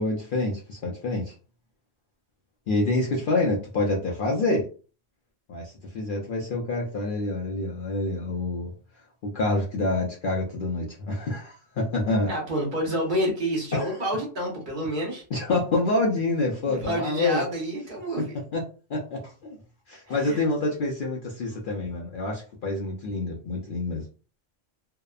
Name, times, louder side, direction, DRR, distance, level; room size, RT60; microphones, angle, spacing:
voice 1, 0.0-1.3 2.7-4.7 5.5-8.7 9.2-12.3 13.7-14.0 15.3-17.4 18.5-18.6 18.9-19.6 19.9-24.0, left 2 dB, 60° left, -1 dB, 0.5 m, -27 dB
voice 2, 12.3-15.2 16.7-18.4 20.1-20.4, equal, 45° right, -1 dB, 0.9 m, -29 dB
2.7 x 2.1 x 2.3 m, 0.38 s
omnidirectional pair, 1.3 m